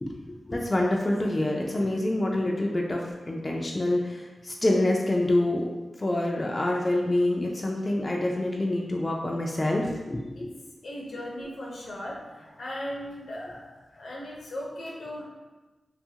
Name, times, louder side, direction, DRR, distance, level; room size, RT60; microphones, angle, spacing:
voice 1, 0.0-5.7 6.0-10.5, left 1 dB, 35° left, -1 dB, 0.3 m, -26 dB
voice 2, 10.8-13.7 13.9-15.2, left 1 dB, 75° left, -3 dB, 0.6 m, -37 dB
2.8 x 2.4 x 2.7 m, 1.2 s
cardioid pair, 55°, 0 cm